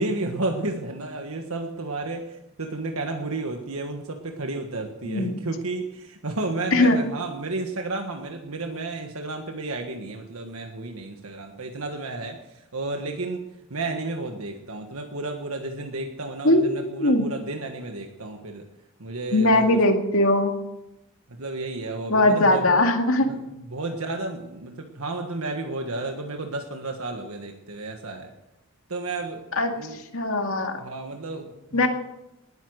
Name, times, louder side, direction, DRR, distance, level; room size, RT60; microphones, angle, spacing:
voice 1, 0.0-18.6 19.0-19.7 21.3-22.6 23.2-23.4 23.7-28.3 28.9-29.4 29.7-30.0 30.8-31.9, right 2 dB, 80° right, 4 dB, 1.5 m, -32 dB
voice 2, 5.0-5.4 6.7-7.0 16.4-17.3 19.3-20.5 22.1-23.3 29.6-30.8 31.7-31.9, left 1 dB, 70° left, 4 dB, 2.2 m, -20 dB
19.5 x 9.8 x 6.4 m, 0.90 s
head